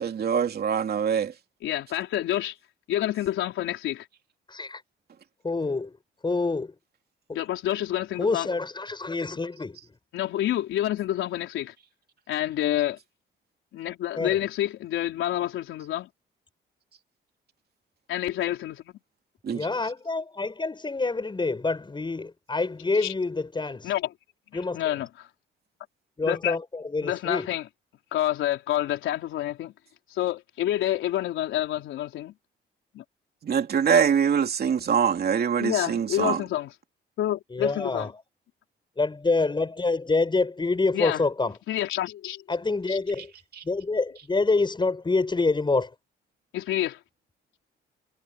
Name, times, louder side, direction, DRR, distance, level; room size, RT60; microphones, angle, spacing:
voice 1, 0.0-1.3 19.5-19.7 33.4-36.4 43.5-43.6, right 7 dB, 50° right, 3.0 m, -24 dB
voice 2, 1.6-2.6 2.9-4.1 7.3-8.5 10.1-11.8 12.3-13.0 13.7-16.1 18.1-19.0 22.9-23.1 23.8-24.2 24.5-25.3 26.2-26.6 27.0-27.7 28.1-29.7 30.1-32.3 32.9-33.0 35.6-36.8 37.2-38.1 40.9-42.6 42.9-43.0 46.5-47.0, left 13 dB, 85° left, 4.1 m, -28 dB
voice 3, 4.5-4.8 5.4-5.9 6.2-6.7 7.3-7.4 8.2-9.8 14.2-14.3 19.5-23.9 24.5-24.8 26.2-26.6 26.9-27.5 37.5-38.1 39.0-41.5 42.5-43.3 43.6-45.9, left 3 dB, 25° left, 6.6 m, -26 dB
cardioid pair, 90°, 20 cm